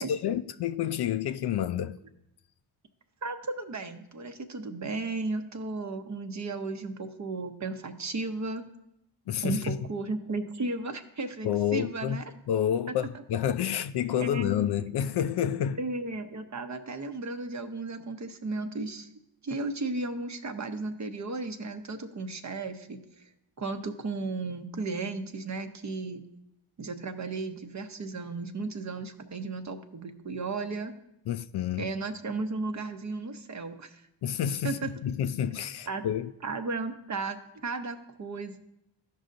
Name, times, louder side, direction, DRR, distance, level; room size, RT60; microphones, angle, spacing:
voice 1, 0.0-2.0 9.3-9.8 11.4-12.2 12.5-15.8 31.3-31.9 34.2-36.3, left 9 dB, 55° left, 0.5 m, -29 dB
voice 2, 3.2-8.6 9.4-12.2 12.9-13.0 14.2-14.5 15.8-19.1 19.4-23.2 23.6-26.2 26.8-30.9 31.8-34.0 34.6-34.9 35.9-36.0 36.4-37.4 37.6-38.6, right 3 dB, 35° right, 0.8 m, -34 dB
14.0 x 5.4 x 2.6 m
supercardioid pair, 60°, 50 cm